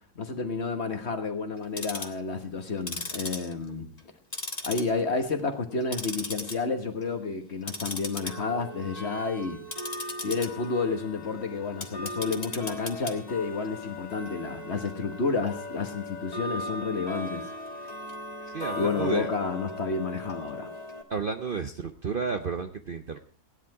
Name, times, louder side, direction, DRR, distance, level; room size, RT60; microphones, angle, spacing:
voice 1, 0.2-3.9 4.6-9.6 10.2-17.4 18.7-20.7, left 4 dB, 45° left, 7 dB, 1.6 m, -30 dB
Tick-tock, 1.6-2.2 2.8-4.1 4.3-5.2 5.5-6.5 6.9-7.2 7.6-21.0, left 2 dB, 25° left, 1.4 m, -38 dB
voice 2, 18.5-19.3 21.1-23.2, right 5 dB, 45° right, 7 dB, 0.7 m, -32 dB
16.5 x 10.0 x 4.8 m, 0.44 s
omnidirectional pair, 1.7 m